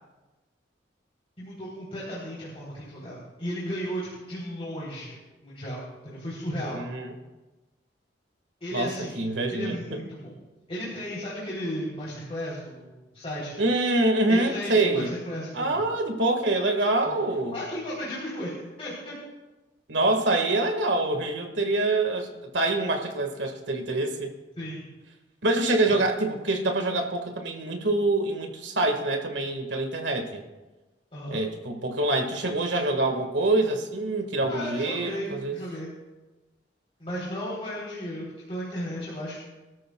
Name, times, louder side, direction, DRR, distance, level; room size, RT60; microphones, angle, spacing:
voice 1, 1.4-6.8 8.6-9.2 9.5-10.4 10.7-13.6 14.3-15.8 17.1-17.2 17.5-19.1 24.6-24.9 31.1-31.4 34.4-35.9 37.0-39.4, equal, 35° left, -7 dB, 3.6 m, -35 dB
voice 2, 6.7-7.1 8.7-9.7 13.6-15.1 15.5-17.6 19.9-22.3 22.5-24.3 25.4-30.4 31.3-35.6, right 2 dB, 90° right, 4 dB, 1.8 m, -25 dB
25.0 x 13.0 x 2.3 m, 1.1 s
head